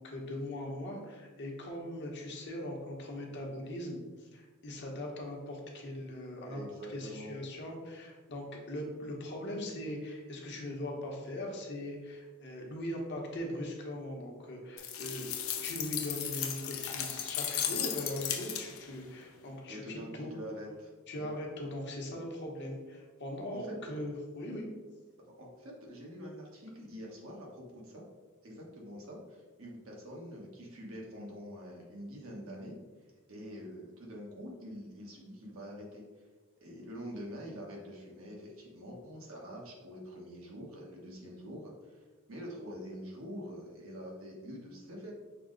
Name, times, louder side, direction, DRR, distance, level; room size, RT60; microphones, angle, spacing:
voice 1, 0.0-6.6 6.9-15.3 15.6-20.3 21.1-24.7, left 1 dB, 55° left, 0 dB, 0.9 m, -40 dB
voice 2, 6.4-7.3 19.7-21.3 23.5-23.8 25.4-28.0 28.4-32.8 33.3-36.0 36.6-42.0 42.3-45.1, equal, 75° right, -2 dB, 1.1 m, -45 dB
sound 1, 14.8-18.9, left 9 dB, 75° left, 0.5 m, -36 dB
5.8 x 2.0 x 3.8 m, 1.3 s
head